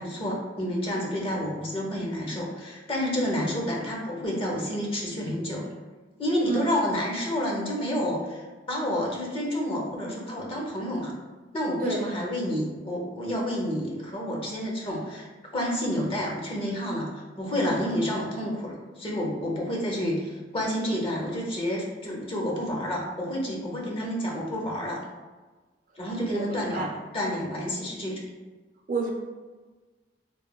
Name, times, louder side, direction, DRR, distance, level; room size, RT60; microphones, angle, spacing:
voice 1, 0.0-5.7 6.2-11.1 11.5-15.3 15.5-25.0 26.0-26.9 27.1-28.3, equal, 30° left, -2 dB, 0.5 m, -29 dB
voice 2, 26.3-27.0 28.9-29.1, right 3 dB, 45° right, 1 dB, 0.3 m, -30 dB
3.0 x 2.2 x 2.2 m, 1.3 s
head